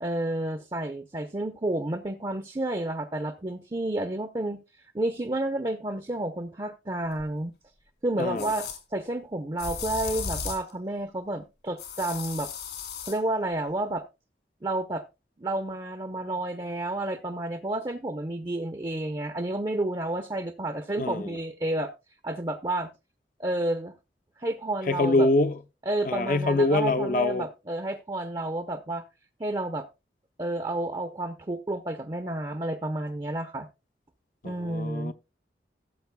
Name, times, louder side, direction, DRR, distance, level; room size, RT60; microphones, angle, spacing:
voice 1, 0.0-4.6 4.9-7.5 8.0-12.5 13.1-14.0 14.6-15.0 15.4-21.9 22.2-22.9 23.4-23.9 24.4-25.3 25.9-29.0 29.4-29.9 30.4-33.7 34.4-35.1, right 1 dB, 25° right, 0.6 m, -30 dB
sound 1, 7.2-7.3 8.4-8.8 9.6-10.7 11.8-13.2, left 6 dB, 75° left, 2.8 m, -35 dB
voice 2, 8.2-8.5 21.0-21.4 24.9-25.6 26.0-27.5 34.4-35.1, left 2 dB, 50° left, 0.6 m, -25 dB
17.0 x 7.5 x 2.2 m
head